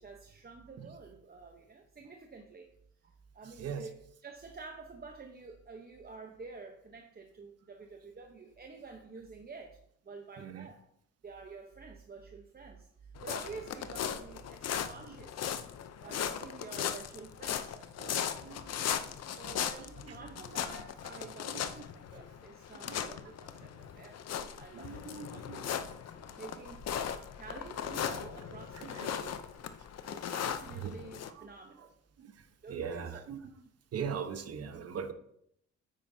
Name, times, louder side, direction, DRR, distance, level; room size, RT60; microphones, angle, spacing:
voice 1, 0.0-2.7 3.0-4.0 4.2-9.8 10.0-10.8 11.2-15.5 16.0-18.7 19.3-25.0 25.3-29.4 30.0-31.9 32.6-33.2, right 4 dB, 30° right, 4 dB, 0.9 m, -49 dB
voice 2, 3.4-3.9 10.4-10.7 15.0-15.2 16.0-16.2 16.7-16.8 18.1-19.1 19.8-20.4 21.5-21.8 22.7-23.1 23.6-23.7 24.7-25.7 28.7-29.1 30.7-30.9 31.2-31.5 31.8-31.9 32.2-33.5 33.9-35.1, right 7 dB, 55° right, 8 dB, 1.1 m, -42 dB
sound 1, 13.2-31.3, left 9 dB, 55° left, 0.7 m, -38 dB
9.0 x 9.0 x 2.8 m, 0.72 s
cardioid pair, 90°, 30 cm